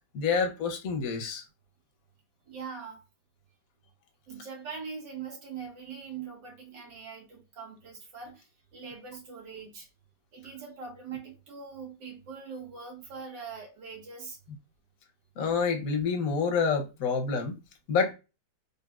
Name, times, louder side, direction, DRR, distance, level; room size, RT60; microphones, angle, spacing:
voice 1, 0.1-1.4 15.4-17.6 17.9-18.1, left 5 dB, 60° left, 1.0 m, -27 dB
voice 2, 2.5-3.0 4.3-9.9 10.3-14.4, right 6 dB, 80° right, 1.9 m, -42 dB
4.0 x 3.4 x 2.3 m
omnidirectional pair, 2.0 m